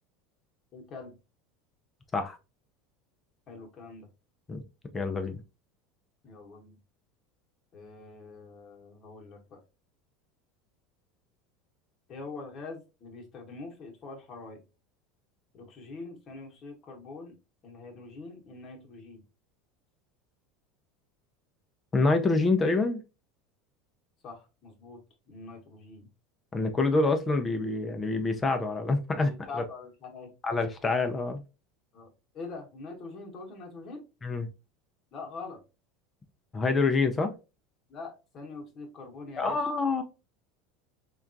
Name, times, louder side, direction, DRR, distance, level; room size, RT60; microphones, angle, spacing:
voice 1, 0.7-1.2 3.5-4.1 6.2-6.7 7.7-9.6 12.1-14.6 15.5-17.3 17.6-19.2 24.2-25.0 25.3-26.1 29.3-30.3 31.9-32.1 32.3-34.0 35.1-35.6 37.9-39.6, left 3 dB, 35° left, 1.0 m, -44 dB
voice 2, 4.9-5.4 21.9-23.0 26.5-29.6 30.4-31.4 34.2-34.5 36.5-37.3 39.4-40.0, left 3 dB, 20° left, 0.4 m, -26 dB
3.5 x 2.3 x 2.5 m
supercardioid pair, 140°, 0 cm